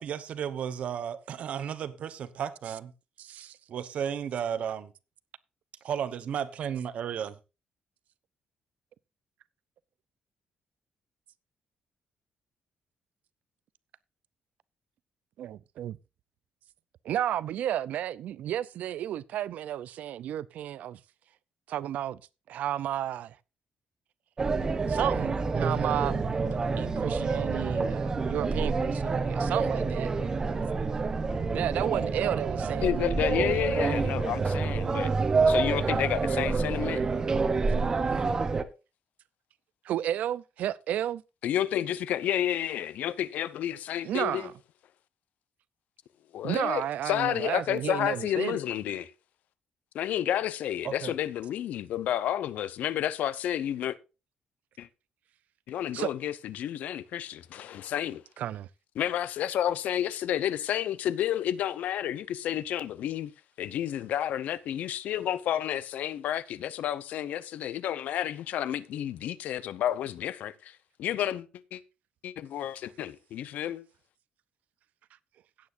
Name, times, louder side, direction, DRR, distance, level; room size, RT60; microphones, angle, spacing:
voice 1, 0.0-2.9 3.7-4.9 5.8-7.4 50.8-51.1, right 8 dB, 55° right, 1.0 m, -33 dB
voice 2, 3.2-3.6 15.4-16.0 17.0-21.0 21.7-22.2 22.5-23.4 24.9-26.2 26.5-30.1 31.5-33.6 39.8-41.2 44.0-44.5 46.4-48.6 55.9-56.1 58.4-58.7, right 11 dB, 70° right, 0.5 m, -32 dB
sound 1, 24.4-38.6, right 4 dB, 25° right, 0.9 m, -28 dB
voice 3, 32.8-35.1 35.5-37.0 41.4-44.4 46.3-49.1 49.9-54.0 54.8-54.9 55.7-58.2 59.0-63.3 63.6-71.8 72.2-73.8, left 11 dB, 75° left, 0.8 m, -31 dB
16.5 x 8.5 x 2.6 m
cardioid pair, 170°, 3 cm